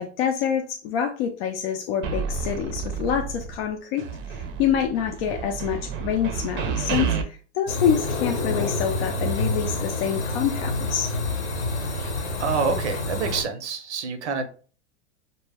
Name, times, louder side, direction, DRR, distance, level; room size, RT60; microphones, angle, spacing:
voice 1, 0.0-11.1, left 8 dB, 60° left, 4 dB, 0.5 m, -26 dB
sound 1, 2.0-3.7 4.0-7.2, right 6 dB, 35° right, 0.5 m, -30 dB
sound 2, 7.7-13.4, left 2 dB, 80° left, 0.8 m, -28 dB
voice 2, 12.0-14.4, right 5 dB, 85° right, 8 dB, 0.7 m, -28 dB
2.1 x 2.1 x 3.4 m, 0.39 s
hypercardioid pair, 105°, 34 cm